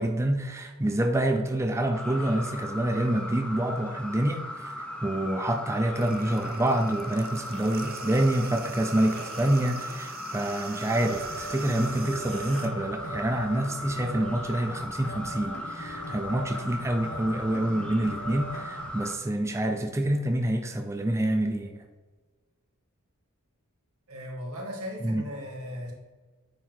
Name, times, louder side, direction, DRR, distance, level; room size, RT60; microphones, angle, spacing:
voice 1, 0.0-4.7 5.0-21.8 25.0-25.2, right 1 dB, 15° right, 5 dB, 0.4 m, -27 dB
sound 1, 1.9-19.2, left 1 dB, 5° left, 0.9 m, -38 dB
sound 2, 6.0-12.7, right 6 dB, 45° right, 0.7 m, -43 dB
sound 3, 11.0-19.0, right 1 dB, 60° left, 1.1 m, -41 dB
voice 2, 24.1-25.9, equal, 85° right, -2 dB, 2.2 m, -37 dB
9.0 x 4.7 x 4.6 m, 1.3 s
head